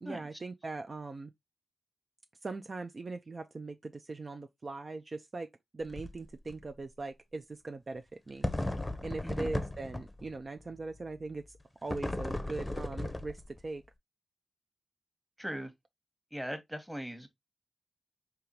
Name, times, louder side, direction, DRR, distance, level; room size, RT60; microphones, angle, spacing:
voice 1, 0.0-1.3 2.4-8.5 9.0-13.8, right 3 dB, 50° right, 0.4 m, -40 dB
sound 1, 5.8-6.2 6.5-6.6 8.4-10.3 11.9-13.7, left 1 dB, 20° left, 0.7 m, -36 dB
voice 2, 15.4-15.7 16.3-17.3, equal, 5° right, 1.1 m, -39 dB
3.6 x 2.9 x 2.8 m
cardioid pair, 45°, 0 cm